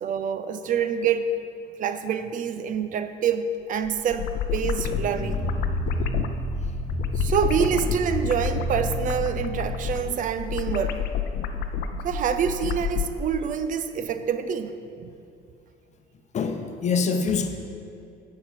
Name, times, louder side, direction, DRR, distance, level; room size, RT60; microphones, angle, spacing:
voice 1, 0.0-1.3 1.8-5.4 7.2-11.0 12.0-15.1, right 7 dB, 50° right, 10 dB, 0.5 m, -26 dB
sound 1, 3.8-13.1, left 7 dB, 75° left, 0.6 m, -29 dB
sound 2, 4.9-10.2, right 3 dB, 25° right, 2.1 m, -32 dB
voice 2, 6.2-6.7 10.1-10.2 16.3-17.5, left 5 dB, 45° left, 6 dB, 0.8 m, -26 dB
8.2 x 4.8 x 7.3 m, 2.5 s
cardioid pair, 110°, 17 cm